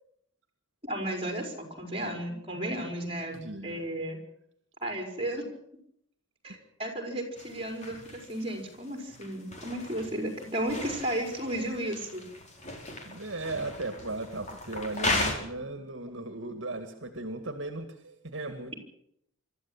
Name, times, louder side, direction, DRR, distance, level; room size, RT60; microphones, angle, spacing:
voice 1, 0.8-4.2 4.8-5.5 6.4-12.2, right 1 dB, 25° right, 4 dB, 5.3 m, -34 dB
voice 2, 3.3-3.9 13.0-18.7, right 2 dB, 60° right, 7 dB, 2.1 m, -37 dB
sound 1, 7.3-15.3, left 2 dB, 35° left, 4.4 m, -37 dB
25.0 x 13.5 x 8.9 m, 0.73 s
head